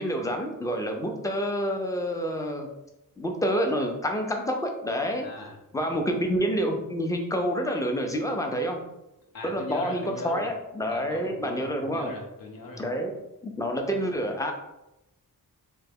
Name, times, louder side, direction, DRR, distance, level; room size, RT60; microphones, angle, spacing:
voice 1, 0.0-2.7 3.2-5.3 5.7-8.8 9.4-12.1 12.8-13.1 13.4-14.5, equal, 10° left, 3 dB, 0.3 m, -28 dB
voice 2, 5.2-6.0 9.3-10.5 10.9-12.8, left 2 dB, 75° left, 0 dB, 0.8 m, -39 dB
3.2 x 2.1 x 3.4 m, 0.92 s
wide cardioid pair, 160°, 35 cm